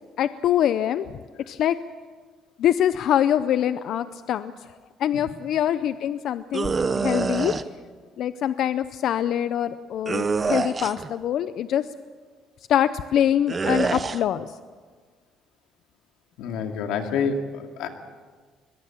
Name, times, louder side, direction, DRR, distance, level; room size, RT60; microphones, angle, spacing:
voice 1, 0.2-1.1 1.5-1.8 2.6-4.5 5.0-7.6 8.2-11.9 12.7-14.5, left 10 dB, 50° left, 13 dB, 0.5 m, -24 dB
sound 1, 6.5-7.6 10.1-11.1 13.5-14.2, right 4 dB, 20° right, 0.7 m, -25 dB
voice 2, 16.4-17.9, left 5 dB, 85° left, 4 dB, 2.4 m, -27 dB
22.0 x 21.5 x 7.3 m, 1.6 s
cardioid pair, 175°, 0 cm